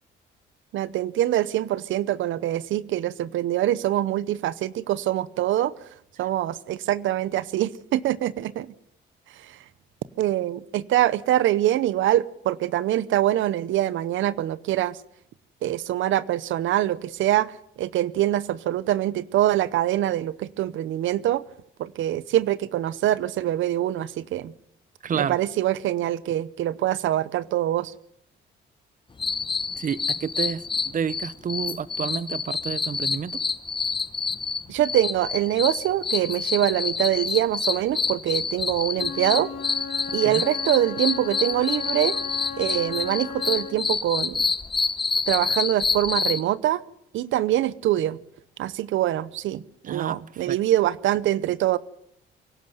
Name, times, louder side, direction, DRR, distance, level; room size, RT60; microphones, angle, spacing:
voice 1, 0.7-5.7 6.2-8.7 9.3-9.6 10.2-15.0 15.6-21.4 21.8-24.5 25.1-27.9 34.7-39.5 40.1-42.2 42.6-44.4 45.3-46.8 47.1-48.2 48.6-51.8, right 13 dB, 80° right, 0.8 m, -24 dB
voice 2, 25.0-25.4 29.8-33.4 40.2-40.4 49.9-50.2 50.5-50.6, right 7 dB, 40° right, 0.8 m, -29 dB
sound 1, 29.2-46.4, left 4 dB, 25° left, 1.0 m, -27 dB
Wind instrument woodwind instrument, 38.9-43.9, left 6 dB, 90° left, 3.4 m, -36 dB
24.5 x 11.5 x 9.3 m
cardioid pair, 90°, 20 cm